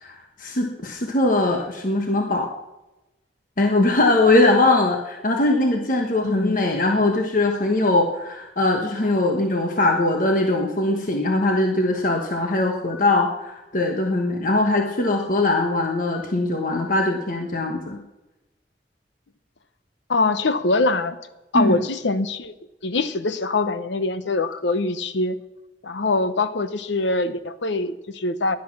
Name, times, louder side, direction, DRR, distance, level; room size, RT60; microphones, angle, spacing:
voice 1, 0.0-2.5 3.6-18.0 21.5-21.8, left 2 dB, 50° left, 2 dB, 1.3 m, -21 dB
voice 2, 6.2-6.7 20.1-21.2 21.5-22.5 22.8-25.4 25.8-28.6, left 3 dB, 85° left, 12 dB, 0.9 m, -23 dB
16.5 x 11.0 x 6.1 m, 1.0 s
head